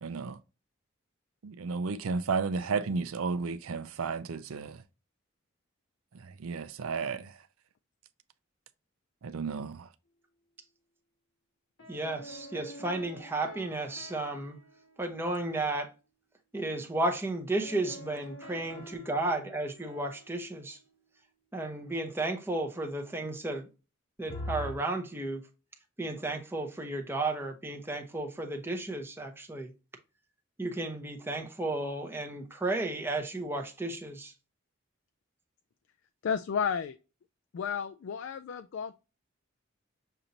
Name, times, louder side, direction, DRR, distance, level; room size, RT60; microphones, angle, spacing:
voice 1, 0.0-0.4 1.4-4.8 6.4-7.3 9.2-9.9, right 4 dB, 90° right, 0.5 m, -33 dB
sound 1, 11.8-15.6 17.6-21.1 24.3-24.7, equal, 85° left, 1.3 m, -45 dB
voice 2, 11.9-14.6 15.0-15.9 16.5-20.8 21.5-23.7 24.2-25.5 26.0-29.7 30.6-34.3, right 2 dB, 10° right, 0.6 m, -33 dB
voice 3, 36.2-37.0 37.5-38.9, left 7 dB, 65° left, 0.3 m, -32 dB
6.6 x 2.6 x 2.9 m
head